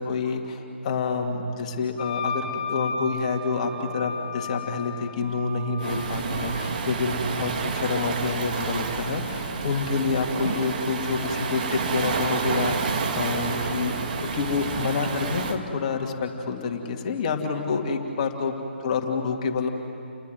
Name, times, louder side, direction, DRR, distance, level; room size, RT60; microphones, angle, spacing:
voice 1, 0.0-13.9 14.2-19.7, left 4 dB, 35° left, 2 dB, 2.5 m, -28 dB
Wind instrument woodwind instrument, 2.0-6.5, left 4 dB, 15° left, 6.7 m, -34 dB
sound 1, 3.5-17.9, left 1 dB, 80° right, 6.3 m, -49 dB
Waves surf, 5.8-15.6, right 5 dB, 45° right, 2.1 m, -29 dB
29.5 x 21.5 x 9.4 m, 2.6 s
figure-of-eight pair, 135°, 6 cm